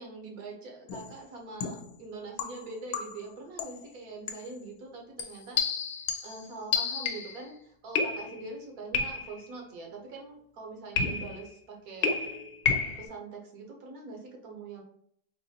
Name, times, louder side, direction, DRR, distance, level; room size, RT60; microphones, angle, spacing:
voice 1, 0.0-5.6 5.9-12.1 13.0-14.8, right 3 dB, 70° right, 1 dB, 1.3 m, -43 dB
sound 1, 0.9-1.1 1.6-1.9 2.4-3.3 3.6-3.9 4.3-4.5 5.2-7.4 8.0-8.5 8.9-9.5 11.0-11.5 12.0-13.1, left 5 dB, 85° left, 1.1 m, -31 dB
3.9 x 2.6 x 2.7 m, 0.66 s
omnidirectional pair, 1.6 m